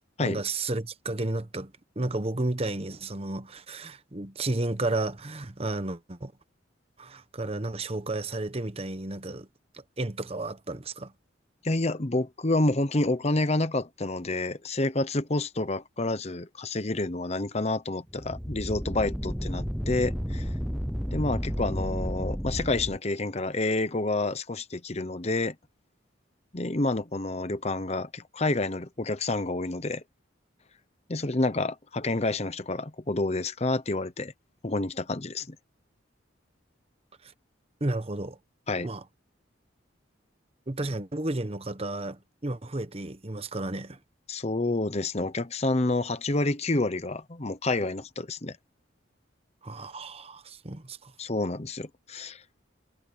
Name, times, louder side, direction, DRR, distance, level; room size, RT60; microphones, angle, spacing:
voice 1, 0.2-6.3 7.0-9.5 9.7-11.1 37.2-37.3 37.8-38.4 38.8-39.0 40.7-44.0 49.6-51.1, right 2 dB, 30° right, 1.0 m, -32 dB
voice 2, 11.6-20.5 21.1-25.5 26.5-30.0 31.1-34.3 34.6-35.6 38.7-38.9 44.3-48.6 51.2-52.4, left 2 dB, 35° left, 0.9 m, -28 dB
sound 1, 18.1-23.0, equal, ahead, 0.5 m, -32 dB
head